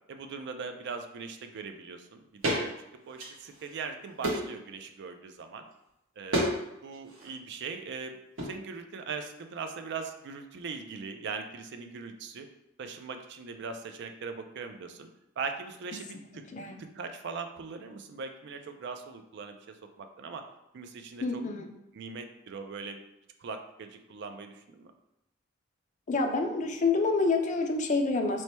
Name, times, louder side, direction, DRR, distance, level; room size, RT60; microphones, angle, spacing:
voice 1, 0.1-2.7 3.1-5.6 6.2-6.5 6.8-8.2 8.4-12.5 12.8-15.1 15.4-16.4 16.9-20.4 20.7-21.2 21.9-23.0 23.4-24.9, right 5 dB, 60° right, 6 dB, 0.4 m, -40 dB
sound 1, 2.4-2.6 3.1-3.8 4.2-4.6 6.3-6.6 6.8-7.3 8.4-8.5, right 1 dB, 75° right, 1.1 m, -30 dB
voice 2, 21.2-21.7 26.1-28.4, left 3 dB, 40° left, 4 dB, 0.4 m, -27 dB
3.1 x 2.2 x 4.2 m, 0.87 s
head